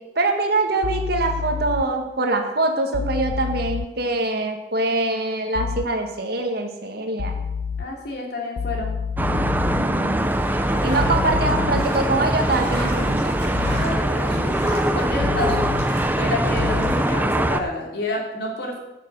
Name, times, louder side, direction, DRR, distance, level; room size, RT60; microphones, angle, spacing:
voice 1, 0.0-7.4 9.8-10.3 10.8-13.4, right 2 dB, 60° right, 4 dB, 1.8 m, -24 dB
sound 1, 0.8-1.8 2.9-3.9 5.5-5.9 7.2-7.8 8.6-9.8 10.9-11.9 13.5-13.9 15.2-15.8 16.6-16.9, left 6 dB, 85° left, 0.5 m, -28 dB
voice 2, 7.8-8.9 13.8-15.7 16.2-18.8, left 2 dB, 65° left, -1 dB, 3.0 m, -29 dB
sound 2, 9.2-17.6, right 1 dB, 10° right, 0.6 m, -22 dB
sound 3, 10.2-17.1, equal, 15° left, 4.8 m, -36 dB
9.6 x 7.0 x 8.0 m, 0.97 s
head